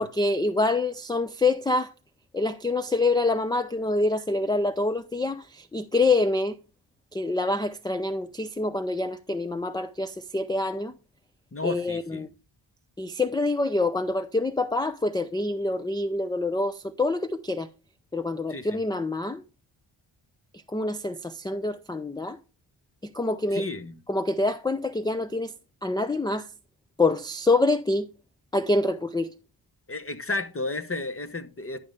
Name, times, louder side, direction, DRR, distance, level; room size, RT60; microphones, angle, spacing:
voice 1, 0.0-1.9 2.3-6.6 7.1-10.9 11.6-12.3 13.0-17.7 18.1-19.4 20.7-22.4 23.0-23.6 24.1-25.5 25.8-26.5 27.0-28.1 28.5-29.3, left 2 dB, 10° left, 0.5 m, -26 dB
voice 2, 11.5-12.3 18.5-18.8 23.5-24.0 29.9-31.8, left 2 dB, 25° left, 1.0 m, -32 dB
11.0 x 5.4 x 3.5 m
cardioid pair, 50°, 49 cm